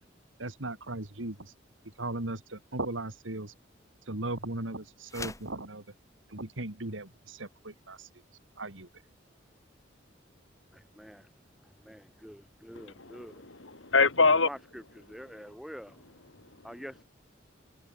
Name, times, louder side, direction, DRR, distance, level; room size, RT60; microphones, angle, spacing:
voice 1, 0.4-1.5 1.8-3.5 4.1-5.8 6.3-8.1 8.6-8.9, right 2 dB, 90° right, 2.8 m, -37 dB
sound 1, 5.1-5.6, left 3 dB, 15° left, 2.3 m, -41 dB
voice 2, 10.7-11.3 11.6-13.4 14.0-16.0 16.6-17.0, equal, ahead, 2.6 m, -46 dB
voice 3, 12.7-14.5, left 4 dB, 85° left, 3.1 m, -25 dB
head